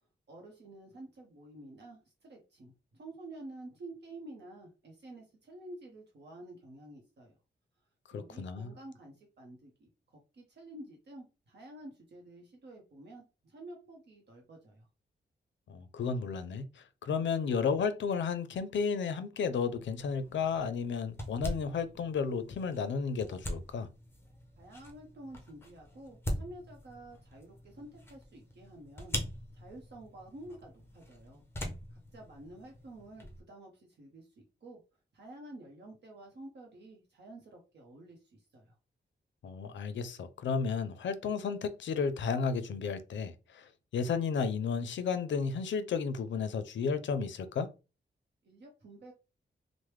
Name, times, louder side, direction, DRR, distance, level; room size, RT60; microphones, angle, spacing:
voice 1, 0.3-7.4 8.1-14.9 24.6-29.2 29.5-31.4 32.1-34.8 35.1-38.7 48.4-49.1, right 1 dB, 60° right, 0.7 m, -50 dB
voice 2, 8.1-8.7 15.7-16.6 17.0-23.9 39.4-43.6 43.9-47.7, left 5 dB, 75° left, 0.4 m, -33 dB
sound 1, 19.8-33.4, left 1 dB, 10° left, 0.7 m, -43 dB
3.2 x 2.0 x 3.1 m
wide cardioid pair, 120°, 20 cm